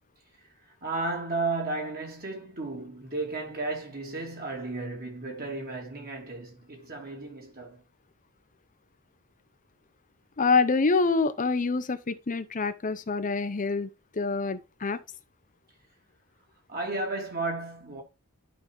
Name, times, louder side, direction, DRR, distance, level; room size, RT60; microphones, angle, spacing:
voice 1, 0.8-7.8 16.7-18.0, right 3 dB, 45° right, 3.2 m, -33 dB
voice 2, 10.4-15.0, left 4 dB, 35° left, 0.7 m, -26 dB
11.5 x 5.4 x 3.5 m
head